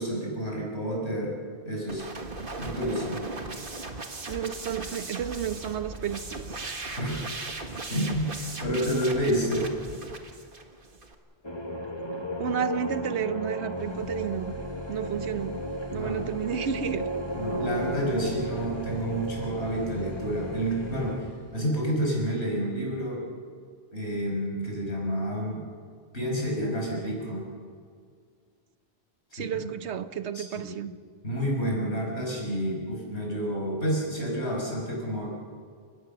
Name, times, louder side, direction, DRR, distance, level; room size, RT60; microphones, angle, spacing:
voice 1, 0.0-1.4 1.7-2.1 2.6-3.2 7.0-7.2 7.9-8.3 8.6-9.7 15.9-16.1 17.3-23.2 23.9-25.6 26.1-27.5 29.4-29.5 30.3-30.9 31.2-35.3, equal, 75° left, -1 dB, 6.1 m, -29 dB
sound 1, 1.9-11.1, right 3 dB, 50° right, 1.9 m, -38 dB
voice 2, 4.3-6.8 12.4-14.5 14.9-15.6 15.9-17.1 29.3-30.9, right 8 dB, 80° right, 12 dB, 1.2 m, -32 dB
sound 2, 11.4-21.2, equal, 25° left, 1.5 m, -35 dB
sound 3, 13.7-21.7, left 2 dB, 30° right, 5.8 m, -44 dB
29.5 x 16.0 x 6.9 m, 2.1 s
omnidirectional pair, 1.1 m